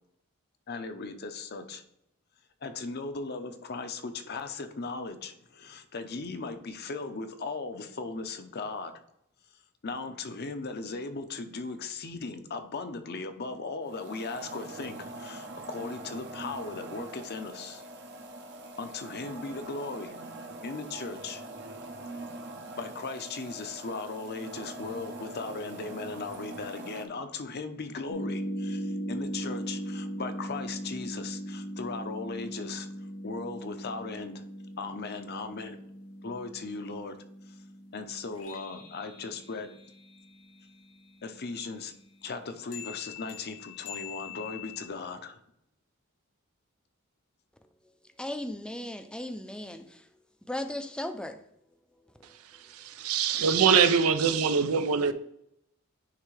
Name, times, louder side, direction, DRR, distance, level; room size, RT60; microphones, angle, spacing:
voice 1, 0.7-1.8 2.6-8.9 9.8-17.8 18.8-20.1 20.6-21.4 22.7-34.4 34.8-35.8 36.2-37.2 37.5-37.6 37.9-39.7 41.2-41.9 42.2-45.4, left 3 dB, 50° left, 8 dB, 0.6 m, -38 dB
sound 1, 13.8-27.0, right 2 dB, 55° right, 0.8 m, -43 dB
sound 2, 28.1-41.1 42.7-44.9, equal, 85° left, 0.7 m, -40 dB
voice 2, 48.2-50.1 50.5-51.4 52.1-52.6, left 1 dB, 5° left, 8 dB, 0.4 m, -37 dB
voice 3, 52.7-55.1, right 6 dB, 85° right, 11 dB, 0.5 m, -23 dB
9.7 x 3.3 x 3.2 m, 0.77 s
head